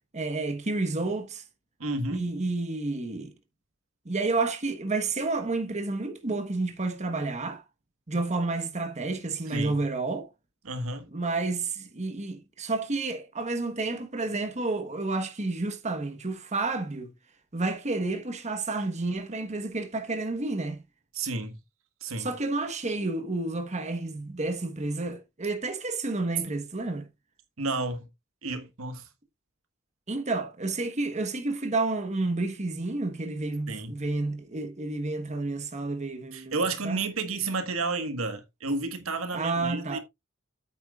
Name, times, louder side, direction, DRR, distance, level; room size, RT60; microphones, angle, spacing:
voice 1, 0.1-1.4 2.1-3.3 4.0-7.6 8.1-10.3 11.1-17.1 17.5-20.8 22.2-27.1 30.1-37.0 39.3-40.0, right 3 dB, 35° right, 1.2 m, -30 dB
voice 2, 1.8-2.3 9.5-9.8 10.6-11.1 21.1-21.6 22.0-22.3 27.6-28.1 28.4-29.0 33.7-33.9 36.3-40.0, right 3 dB, 80° right, 1.5 m, -31 dB
9.0 x 8.5 x 2.4 m
head